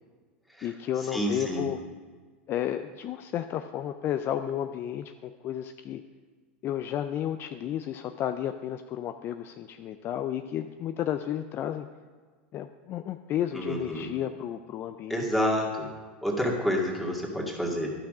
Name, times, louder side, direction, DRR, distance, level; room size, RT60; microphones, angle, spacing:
voice 1, 0.6-1.8 2.5-6.0 6.6-11.9 12.5-15.3, left 10 dB, 40° left, 8 dB, 0.4 m, -32 dB
voice 2, 1.1-1.6 13.5-14.1 15.1-15.9 16.2-17.9, equal, ahead, -3 dB, 2.1 m, -28 dB
11.5 x 5.9 x 5.0 m, 1.5 s
hypercardioid pair, 105°, 6 cm